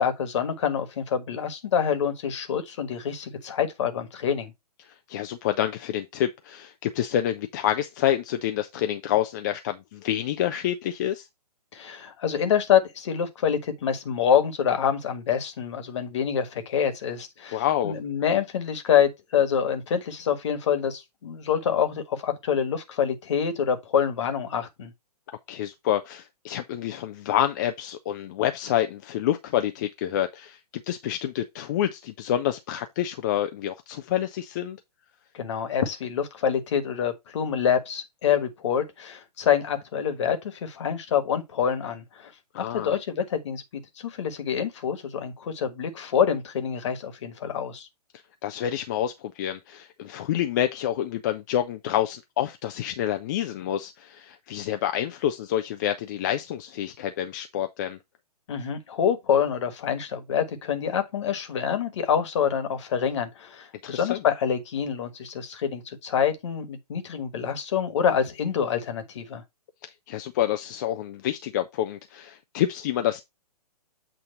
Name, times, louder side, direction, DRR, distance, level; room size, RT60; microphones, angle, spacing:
voice 1, 0.0-4.5 11.7-24.9 35.3-42.3 42.6-43.6 44.0-47.9 58.5-69.4, left 8 dB, 45° left, 1.5 m, -26 dB
voice 2, 4.8-11.3 17.5-17.9 25.5-30.6 30.9-34.8 42.5-42.9 48.4-58.0 63.8-64.2 70.1-73.2, left 11 dB, 30° left, 0.5 m, -28 dB
8.0 x 2.7 x 5.6 m
figure-of-eight pair, 125°, 21 cm